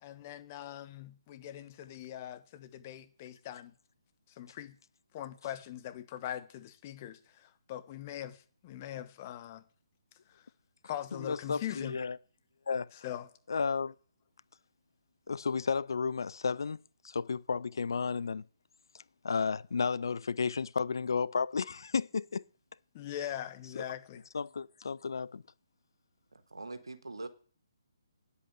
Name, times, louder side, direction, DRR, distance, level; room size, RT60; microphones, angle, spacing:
voice 1, 0.0-3.7 4.4-4.7 5.1-9.6 10.3-10.4 10.8-12.0 13.0-13.3 22.9-24.2, left 12 dB, 30° left, 1.2 m, -42 dB
voice 2, 11.1-12.2 12.7-13.0 13.5-13.9 15.3-16.8 17.0-18.4 19.2-22.4 24.3-25.4, left 5 dB, 60° left, 0.5 m, -32 dB
voice 3, 26.3-27.3, right 2 dB, 75° right, 1.7 m, -43 dB
9.9 x 8.3 x 8.0 m
figure-of-eight pair, 140°, 2 cm